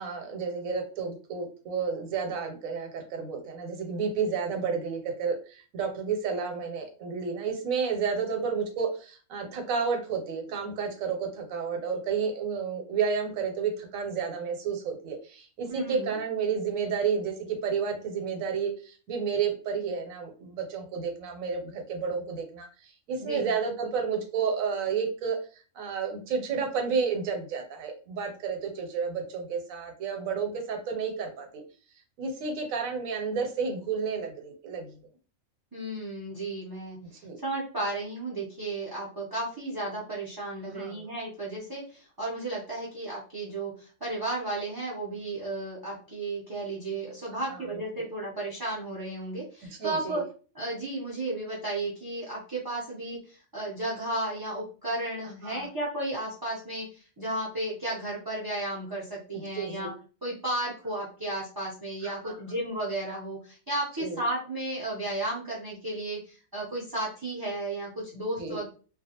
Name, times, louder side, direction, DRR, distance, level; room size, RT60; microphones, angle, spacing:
voice 1, 0.0-25.4 25.7-31.6 32.2-34.9 37.1-37.4 40.6-41.1 47.3-47.6 48.0-48.1 49.8-50.2 55.4-55.7 59.3-59.9 62.2-62.4 64.0-64.2 68.4-68.6, right 6 dB, 80° right, 4 dB, 1.0 m, -31 dB
voice 2, 15.7-16.2 23.2-23.5 35.7-50.2 50.5-59.9 60.2-68.7, right 2 dB, 30° right, -6 dB, 0.4 m, -34 dB
2.4 x 2.2 x 2.8 m, 0.38 s
omnidirectional pair, 1.4 m